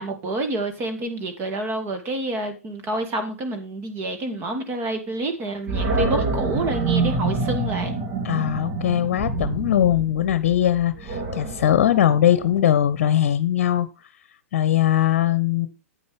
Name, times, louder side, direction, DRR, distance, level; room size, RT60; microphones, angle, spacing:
voice 1, 0.0-8.0, right 2 dB, 30° right, 2.3 m, -28 dB
Animal, 5.7-12.8, right 3 dB, 45° right, 3.4 m, -27 dB
voice 2, 8.2-13.9 14.5-15.7, left 11 dB, 55° left, 0.9 m, -20 dB
9.6 x 8.8 x 3.5 m
hypercardioid pair, 115°, 8 cm